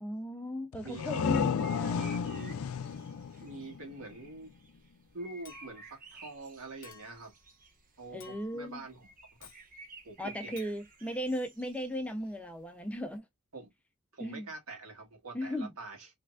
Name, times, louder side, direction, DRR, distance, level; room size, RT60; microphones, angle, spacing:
voice 1, 0.0-2.1 8.1-8.8 10.2-13.2 14.2-14.5 15.3-15.7, equal, 5° left, 0.5 m, -37 dB
sound 1, 0.7-4.3, left 6 dB, 75° left, 0.4 m, -33 dB
voice 2, 0.8-2.6 3.4-4.5 5.1-7.3 8.0-9.1 9.4-9.5 10.0-10.6 13.5-13.7 14.1-16.1, right 3 dB, 80° right, 1.9 m, -45 dB
sound 2, 1.5-13.2, right 3 dB, 40° right, 0.9 m, -54 dB
Chink clink, 5.5-6.0 6.8-7.3 8.2-8.7 9.4-9.7 10.6-10.8, left 6 dB, 40° left, 0.8 m, -53 dB
3.3 x 3.1 x 2.4 m
head